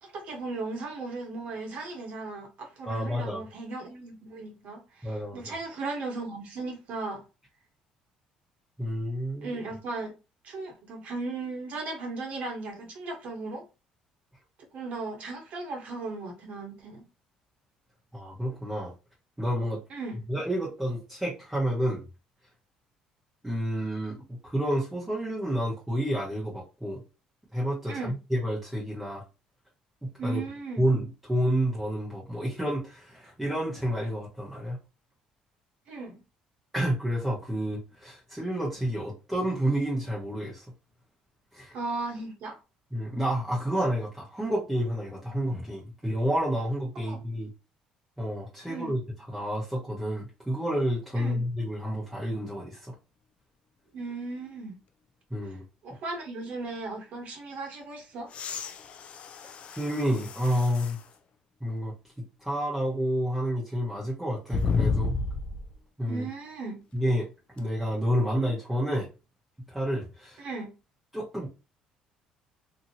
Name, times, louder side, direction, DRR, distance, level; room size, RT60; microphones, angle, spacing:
voice 1, 0.0-7.2 9.4-10.1 10.4-13.6 14.7-17.1 19.9-20.2 27.9-28.1 30.2-30.8 35.9-36.2 41.7-42.6 46.9-47.2 48.6-49.0 51.1-51.4 53.9-54.8 55.4-55.6 55.8-58.3 66.1-66.8 70.4-70.7, right 3 dB, 60° right, 1.1 m, -36 dB
voice 2, 2.9-3.4 5.0-5.5 8.8-9.6 18.1-18.9 19.4-19.8 20.3-22.0 23.4-27.0 27.5-29.2 30.0-30.4 30.8-34.8 36.7-40.6 41.5-41.8 42.9-47.5 48.2-49.0 49.3-52.9 55.3-55.6 59.8-61.0 61.6-61.9 62.4-65.2 66.0-66.3 66.9-67.3 67.6-69.1 69.7-70.4 71.1-71.5, equal, 5° right, 1.0 m, -29 dB
sound 1, 58.3-61.0 61.7-61.8 64.5-65.7 67.6-67.7, left 4 dB, 50° left, 0.4 m, -31 dB
2.8 x 2.7 x 2.7 m
cardioid pair, 100°, 3 cm